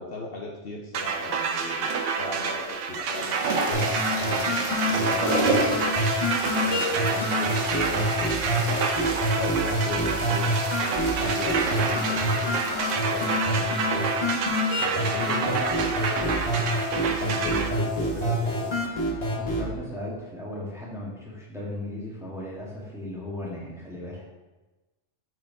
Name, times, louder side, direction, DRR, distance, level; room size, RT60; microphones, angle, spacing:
voice 1, 0.0-5.9 6.6-10.5 10.8-14.1 14.8-18.7, left 2 dB, 55° left, -2 dB, 0.9 m, -37 dB
sound 1, 0.9-17.7, right 5 dB, 90° right, 1.0 m, -29 dB
sound 2, 1.9-2.2 2.9-18.7, right 2 dB, 35° right, 0.6 m, -34 dB
sound 3, 3.7-19.7, equal, 35° left, 1.2 m, -27 dB
voice 2, 19.3-24.3, left 1 dB, ahead, -5 dB, 1.2 m, -36 dB
8.7 x 4.3 x 2.7 m, 1.1 s
omnidirectional pair, 1.2 m